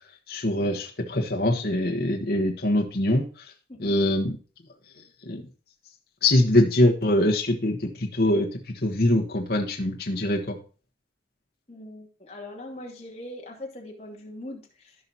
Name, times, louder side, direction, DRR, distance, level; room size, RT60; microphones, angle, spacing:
voice 1, 0.3-3.5 3.8-4.4 5.2-5.5 6.2-10.6, left 1 dB, 55° left, 0 dB, 1.2 m, -23 dB
voice 2, 11.7-15.1, left 1 dB, 35° left, -1 dB, 2.6 m, -41 dB
15.5 x 5.5 x 2.8 m, 0.37 s
head